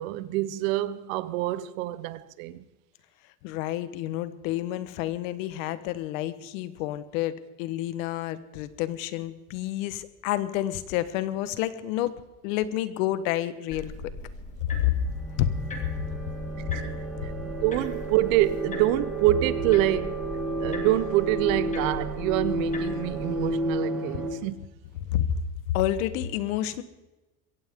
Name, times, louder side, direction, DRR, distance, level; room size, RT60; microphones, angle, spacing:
voice 1, 0.0-2.6 16.7-16.9 17.2-20.3 20.6-24.6, right 14 dB, 85° right, 1.0 m, -26 dB
voice 2, 3.4-12.2 12.4-13.9 14.7-14.9 15.4-15.5 25.1-25.4 25.7-26.8, left 13 dB, 85° left, 1.3 m, -29 dB
sound 1, 13.7-23.6, left 2 dB, 20° left, 2.1 m, -40 dB
sound 2, 14.7-24.3, right 1 dB, ahead, 3.9 m, -32 dB
22.5 x 17.0 x 3.7 m
cardioid pair, 160°, 39 cm